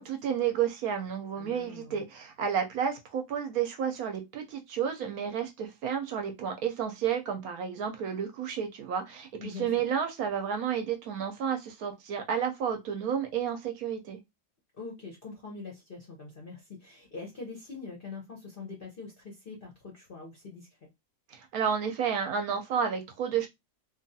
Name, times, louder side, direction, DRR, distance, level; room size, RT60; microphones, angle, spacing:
voice 1, 0.0-14.2 21.3-23.5, right 8 dB, 70° right, 0.9 m, -31 dB
voice 2, 1.4-2.0 9.4-9.7 14.7-20.9, left 4 dB, 55° left, 0.6 m, -43 dB
2.8 x 2.3 x 2.6 m
omnidirectional pair, 1.8 m